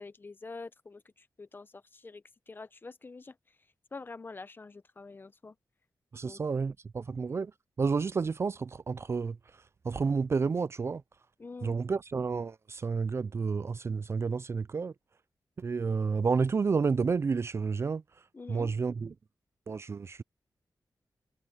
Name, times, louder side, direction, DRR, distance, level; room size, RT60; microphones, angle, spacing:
voice 1, 0.0-3.4 3.9-5.6 6.2-6.4 7.0-7.1 11.4-11.8 18.3-18.7, left 3 dB, 30° left, 0.7 m, -46 dB
voice 2, 6.1-7.5 7.8-11.0 11.6-14.9 15.6-18.0 18.5-19.1 19.7-20.2, right 5 dB, 35° right, 0.3 m, -30 dB
wide cardioid pair, 145°, 7 cm